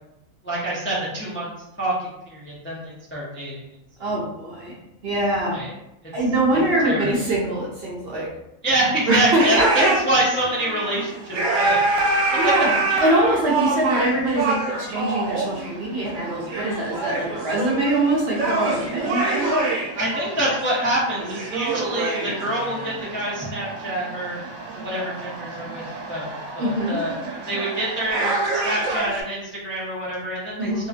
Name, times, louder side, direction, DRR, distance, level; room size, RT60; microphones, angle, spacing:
voice 1, 0.4-1.5 1.8-3.6 5.5-5.7 6.0-6.1 6.8-7.1 8.6-11.9 12.9-13.0 19.9-24.4 24.7-27.1 27.5-30.9, right 1 dB, 15° left, -7 dB, 0.4 m, -26 dB
voice 2, 4.0-4.7 5.0-5.6 6.1-8.3 9.1-9.9 12.4-12.7 13.0-19.7 26.6-27.0 30.6-30.9, right 1 dB, 55° right, -4 dB, 0.8 m, -23 dB
sound 1, 9.4-29.2, right 3 dB, 90° right, 1.0 m, -26 dB
2.8 x 2.5 x 2.4 m, 0.86 s
omnidirectional pair, 1.4 m